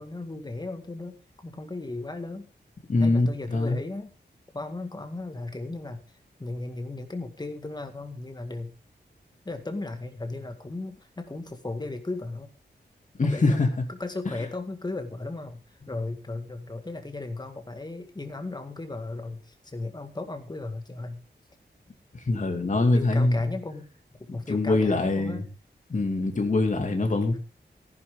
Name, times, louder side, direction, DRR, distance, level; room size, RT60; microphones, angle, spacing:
voice 1, 0.0-2.5 3.0-4.1 4.5-8.8 9.4-12.5 13.2-13.6 13.9-21.2 22.8-23.9 24.3-25.4, left 2 dB, 25° left, 7 dB, 1.9 m, -36 dB
voice 2, 2.9-3.8 13.2-13.7 22.1-23.5 24.3-25.4 25.9-27.4, left 2 dB, 45° left, 5 dB, 2.5 m, -24 dB
14.5 x 11.0 x 3.8 m, 0.32 s
wide cardioid pair, 135°, 18 cm